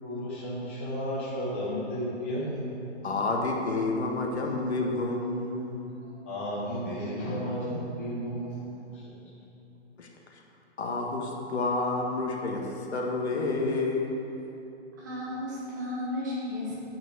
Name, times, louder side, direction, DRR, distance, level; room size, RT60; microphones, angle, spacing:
voice 1, 0.0-2.9 6.2-9.0, equal, 10° left, -9 dB, 0.7 m, -33 dB
voice 2, 3.0-6.0 10.0-10.1 10.8-14.2, left 3 dB, 70° left, 1 dB, 1.8 m, -29 dB
voice 3, 15.0-16.7, left 1 dB, 15° right, -5 dB, 1.0 m, -34 dB
8.7 x 6.1 x 8.0 m, 2.9 s
hypercardioid pair, 180°, 34 cm